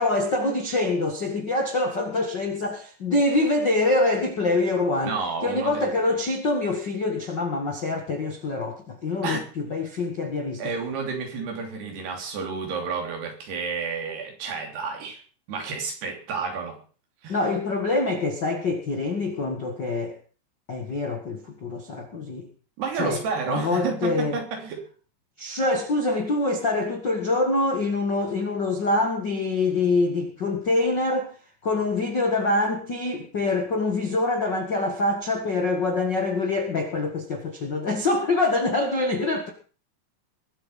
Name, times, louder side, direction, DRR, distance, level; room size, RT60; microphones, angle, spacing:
voice 1, 0.0-5.2 5.4-10.7 17.3-20.2 20.7-22.5 23.0-23.2 23.5-24.4 25.4-31.3 31.6-39.5, left 2 dB, 50° left, 1.3 m, -25 dB
voice 2, 5.0-5.9 9.2-9.4 10.6-15.2 15.5-16.8 17.2-17.4 22.8-24.8, right 5 dB, 70° right, 5.1 m, -30 dB
21.0 x 7.8 x 5.5 m
omnidirectional pair, 4.9 m